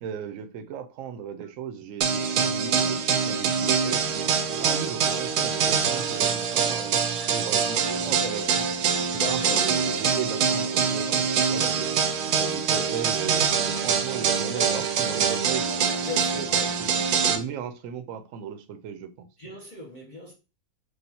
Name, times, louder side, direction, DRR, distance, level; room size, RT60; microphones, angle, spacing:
voice 1, 0.0-4.3 4.6-8.7 9.1-11.9 12.4-15.7 16.3-19.3, right 8 dB, 70° right, 0.9 m, -36 dB
sound 1, 2.0-17.4, right 6 dB, 90° right, 1.1 m, -24 dB
voice 2, 4.5-4.8 9.2-9.6 14.1-15.3 16.0-16.5 19.4-20.3, left 3 dB, 35° left, 0.9 m, -38 dB
4.7 x 2.5 x 2.8 m
omnidirectional pair, 1.6 m